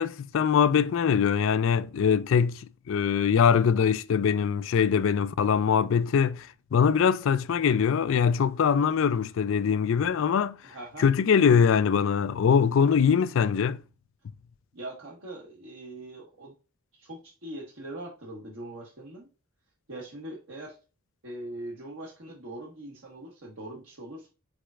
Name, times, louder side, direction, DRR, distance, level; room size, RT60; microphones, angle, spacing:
voice 1, 0.0-10.6 11.0-13.8, left 7 dB, 60° left, 0.3 m, -23 dB
voice 2, 10.6-11.0 14.7-16.5 16.9-19.3 19.9-20.8 21.2-24.3, right 1 dB, 60° right, 1.1 m, -41 dB
4.8 x 4.2 x 2.4 m
head